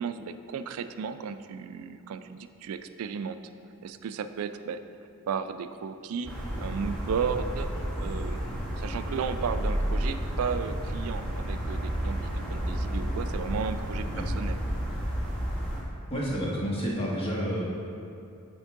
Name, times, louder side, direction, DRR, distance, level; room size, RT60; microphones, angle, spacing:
voice 1, 0.0-3.4 3.8-4.8 5.3-14.5, right 6 dB, 70° right, 11 dB, 0.3 m, -34 dB
sound 1, 6.2-15.8, equal, 5° left, 1.0 m, -31 dB
voice 2, 16.1-17.6, equal, 25° left, -5 dB, 1.2 m, -30 dB
8.1 x 4.5 x 3.6 m, 2.7 s
head